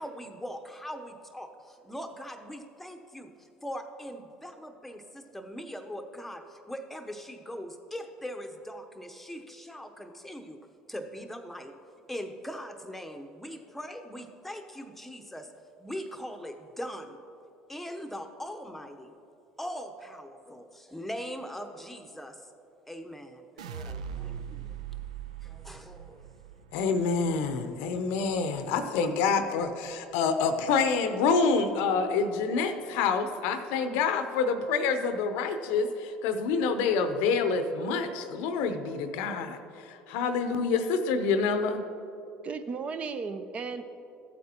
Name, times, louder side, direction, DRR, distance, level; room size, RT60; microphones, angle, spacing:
voice 1, 0.0-10.6 10.9-11.7 12.1-15.5 15.8-17.2 17.7-19.1 19.6-22.6 22.9-24.8 25.4-26.3, equal, 5° left, 5 dB, 0.8 m, -41 dB
sound 1, 23.6-29.8 30.1-30.7, right 8 dB, 85° right, 0.3 m, -42 dB
voice 2, 26.7-41.8, left 5 dB, 70° left, 9 dB, 0.7 m, -27 dB
voice 3, 42.4-43.8, right 5 dB, 40° right, 10 dB, 0.6 m, -35 dB
14.5 x 8.4 x 2.9 m, 2.8 s
hypercardioid pair, 70°, 3 cm